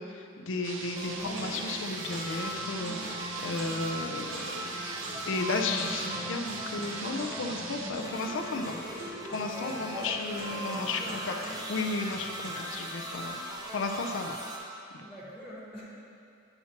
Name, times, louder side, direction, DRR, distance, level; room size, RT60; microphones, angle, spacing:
voice 1, 0.0-4.7 5.3-8.7 9.3-11.3 11.7-13.4 13.7-14.3 14.9-15.0, left 3 dB, 70° left, 4 dB, 0.5 m, -34 dB
sound 1, 0.6-7.9, right 4 dB, 70° right, 0.5 m, -41 dB
sound 2, 0.6-1.0 1.3-12.8, equal, 85° right, 1.5 m, -45 dB
sound 3, 1.0-14.6, right 1 dB, 20° right, 0.6 m, -39 dB
voice 2, 9.4-11.5 15.0-15.8, equal, 5° right, -9 dB, 1.1 m, -44 dB
8.9 x 5.8 x 2.9 m, 2.6 s
head